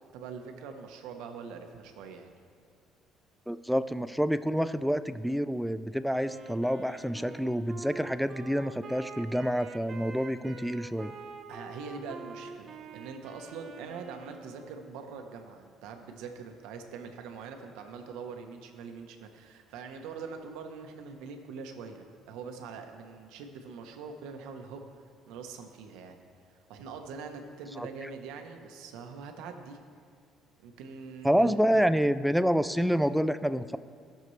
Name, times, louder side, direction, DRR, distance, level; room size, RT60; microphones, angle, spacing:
voice 1, 0.1-2.3 11.5-24.8 25.3-26.2 26.7-29.8 30.6-31.8, right 5 dB, 85° right, 5 dB, 0.9 m, -43 dB
voice 2, 3.5-11.1 27.8-28.1 31.2-33.8, equal, ahead, 13 dB, 0.3 m, -28 dB
Wind instrument woodwind instrument, 6.0-14.9, right 4 dB, 30° right, 0.8 m, -46 dB
16.5 x 6.7 x 3.2 m, 2.2 s
cardioid pair, 125°, 0 cm